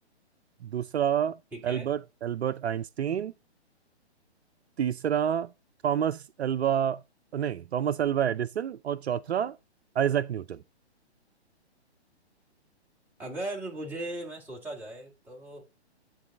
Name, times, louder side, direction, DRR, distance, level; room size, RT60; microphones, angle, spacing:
voice 1, 0.6-1.4 1.6-3.3 4.8-5.5 5.8-7.0 7.3-9.6 10.0-10.6, right 9 dB, 70° right, 0.5 m, -28 dB
voice 2, 1.5-1.9 13.2-15.7, right 1 dB, 5° right, 2.1 m, -38 dB
10.5 x 4.0 x 3.7 m
hypercardioid pair, 135°, 34 cm